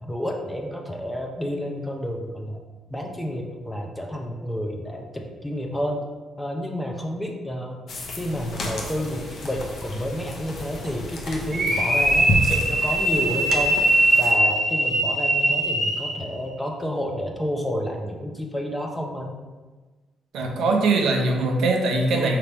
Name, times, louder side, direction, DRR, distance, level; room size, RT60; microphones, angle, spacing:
voice 1, 0.0-2.6 2.9-6.0 6.4-7.8 8.2-13.8 14.2-19.3, equal, 5° left, 1 dB, 0.5 m, -30 dB
sound 1, 7.9-14.3, left 1 dB, 50° left, 0.7 m, -31 dB
sound 2, 11.5-16.2, right 1 dB, 35° right, 1.0 m, -21 dB
voice 2, 20.3-22.4, right 2 dB, 85° right, 2 dB, 0.6 m, -21 dB
4.9 x 2.8 x 3.4 m, 1.3 s
cardioid pair, 140°, 0 cm